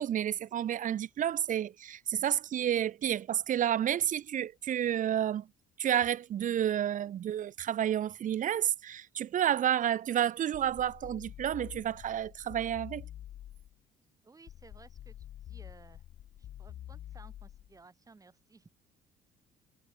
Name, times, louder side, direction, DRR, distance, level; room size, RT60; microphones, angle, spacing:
voice 1, 0.0-5.5 5.8-13.0, right 10 dB, 50° right, 1.1 m, -30 dB
sound 1, 10.5-13.8 14.5-17.8, left 12 dB, 60° left, 3.6 m, -47 dB
voice 2, 14.2-16.0 16.4-18.7, right 3 dB, 20° right, 3.9 m, -58 dB
cardioid pair, 110°, 17 cm